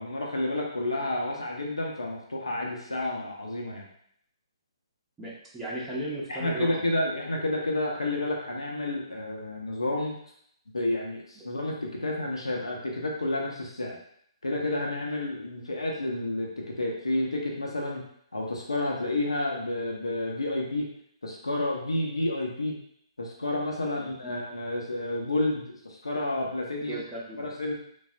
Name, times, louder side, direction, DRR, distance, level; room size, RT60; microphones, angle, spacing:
voice 1, 0.0-3.9 6.3-10.2 10.7-14.0 14.4-18.0 18.3-20.9 21.2-22.7 23.2-27.0 27.4-27.8, left 1 dB, 75° left, -1 dB, 0.6 m, -30 dB
voice 2, 5.2-6.9 24.0-24.1 26.9-27.5, right 1 dB, 10° right, -6 dB, 0.5 m, -35 dB
3.2 x 2.0 x 2.4 m, 0.68 s
figure-of-eight pair, 130°, 3 cm